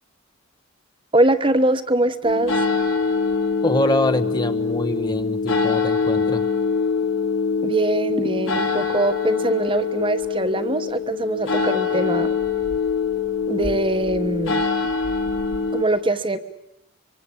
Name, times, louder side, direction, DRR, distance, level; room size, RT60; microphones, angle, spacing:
voice 1, 1.1-2.6 7.6-12.3 13.5-14.6 15.7-16.4, right 2 dB, 25° right, 9 dB, 1.2 m, -22 dB
sound 1, 2.2-15.8, left 5 dB, 65° left, 3.3 m, -24 dB
voice 2, 3.6-6.4, left 1 dB, 20° left, 9 dB, 1.0 m, -24 dB
25.5 x 24.0 x 8.6 m, 0.78 s
head